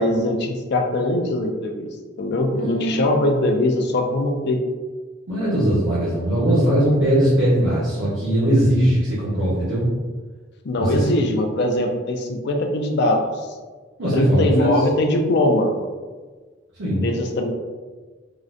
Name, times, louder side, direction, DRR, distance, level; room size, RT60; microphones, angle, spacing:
voice 1, 0.0-1.9 2.2-4.6 10.6-13.5 14.1-15.7 17.0-17.5, left 1 dB, 60° left, 3 dB, 0.4 m, -21 dB
voice 2, 2.5-3.0 5.3-9.9 10.8-11.0 14.0-14.8 16.8-17.1, equal, 75° right, -10 dB, 0.8 m, -20 dB
3.7 x 2.1 x 2.5 m, 1.4 s
head